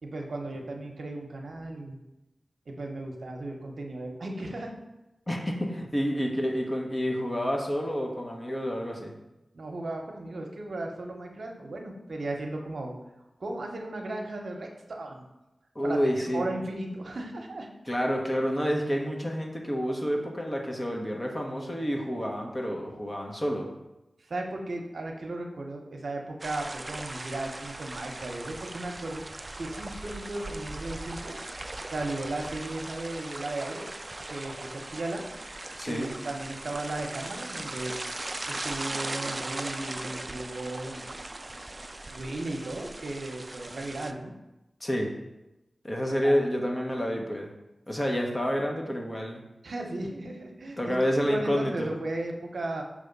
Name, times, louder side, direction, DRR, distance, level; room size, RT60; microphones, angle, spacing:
voice 1, 0.0-2.0 2.7-4.7 9.5-12.9 13.4-15.2 15.8-17.7 24.2-29.2 29.6-31.4 31.9-33.9 34.3-35.3 35.9-38.0 38.5-41.0 42.1-44.3 46.2-46.3 49.6-52.8, right 2 dB, 75° right, 2 dB, 0.8 m, -36 dB
voice 2, 5.3-9.2 15.7-16.4 17.9-23.7 35.8-36.1 44.8-45.1 45.8-47.5 47.9-49.4 50.8-51.9, equal, 30° left, 0 dB, 1.1 m, -29 dB
sound 1, 26.4-44.1, right 2 dB, 35° right, 0.3 m, -39 dB
6.2 x 3.4 x 5.3 m, 0.95 s
wide cardioid pair, 65°, 0 cm